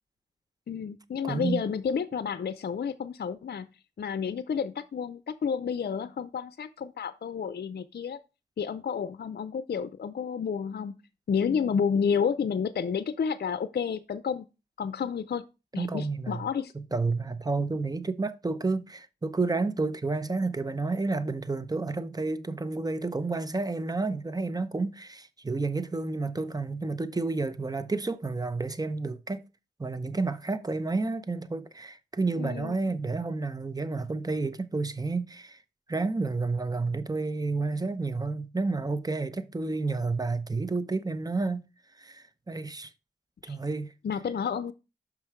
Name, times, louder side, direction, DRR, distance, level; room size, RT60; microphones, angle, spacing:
voice 1, 0.7-3.7 4.0-8.2 8.6-10.9 11.3-14.4 14.8-15.4 15.7-16.7 32.4-32.7 43.5-43.6 44.0-44.7, left 6 dB, 60° left, 0.5 m, -30 dB
voice 2, 1.2-1.6 15.8-16.4 16.7-29.4 29.8-35.6 35.9-41.7 42.0-42.9 43.4-43.9, right 3 dB, 20° right, 0.7 m, -30 dB
6.0 x 5.5 x 4.5 m
cardioid pair, 65°, 19 cm